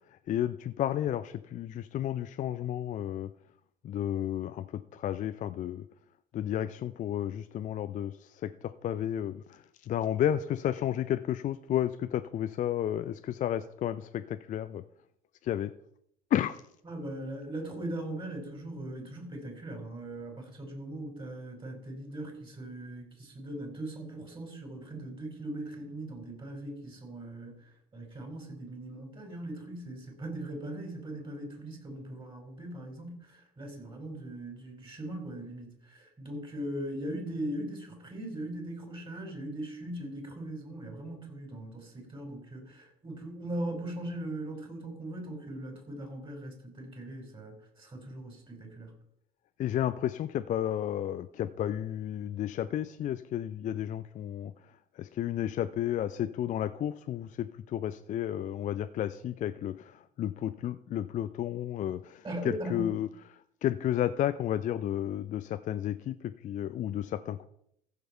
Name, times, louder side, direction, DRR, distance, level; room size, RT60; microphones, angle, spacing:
voice 1, 0.1-3.3 3.8-5.8 6.3-14.8 15.4-15.7 16.3-16.6 49.6-54.5 55.0-63.1 63.6-67.5, left 11 dB, 35° left, 11 dB, 0.5 m, -32 dB
voice 2, 16.8-48.9 62.2-63.0, right 1 dB, 25° right, 2 dB, 4.6 m, -40 dB
15.0 x 6.7 x 4.5 m, 0.74 s
figure-of-eight pair, 55°, 21 cm